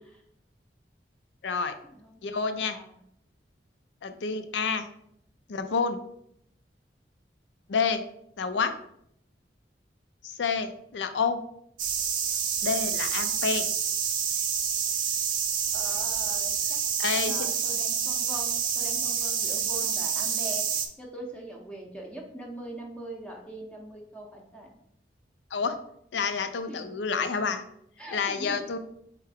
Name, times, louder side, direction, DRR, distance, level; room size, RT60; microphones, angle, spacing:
voice 1, 1.4-1.7 2.2-2.8 4.0-4.9 5.5-6.0 7.7-8.0 8.4-8.7 10.2-11.4 12.6-13.6 17.0-17.5 25.5-25.8 26.1-27.6 28.1-28.8, left 5 dB, 80° left, 9 dB, 0.5 m, -28 dB
voice 2, 2.7-3.0 15.7-16.8 17.2-24.7 26.7-27.0 28.0-28.8, right 1 dB, 5° left, -1 dB, 0.6 m, -42 dB
sound 1, 11.8-20.9, right 7 dB, 50° right, 0.5 m, -28 dB
4.5 x 3.3 x 3.4 m, 0.73 s
head